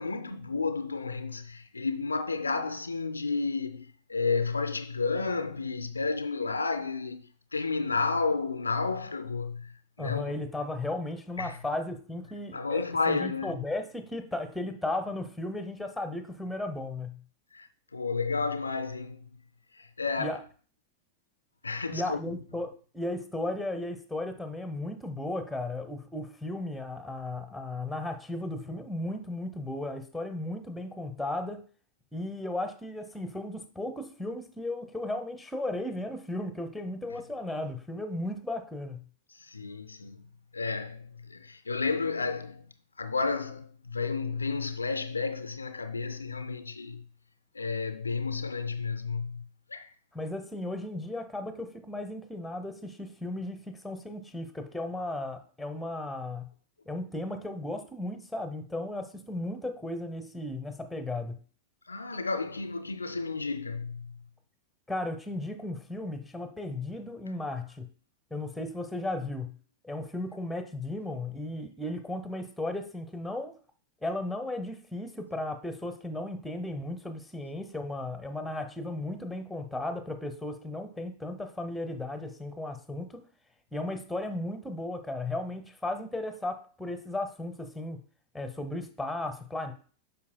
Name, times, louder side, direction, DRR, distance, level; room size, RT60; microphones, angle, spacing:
voice 1, 0.0-10.3 11.4-11.6 12.5-13.6 17.5-19.2 19.7-20.4 21.6-22.2 39.3-40.2 40.5-42.7 43.0-47.0 47.5-49.9 61.9-64.2, left 4 dB, 80° left, 0.4 m, -32 dB
voice 2, 10.0-17.2 20.2-20.4 21.9-31.6 32.1-39.0 50.1-56.5 56.9-61.4 64.9-67.9 68.3-69.5 69.8-73.6 74.0-83.2 83.7-88.0 88.3-89.7, left 2 dB, 5° left, 0.8 m, -35 dB
8.5 x 5.6 x 2.2 m
figure-of-eight pair, 90°, 0 cm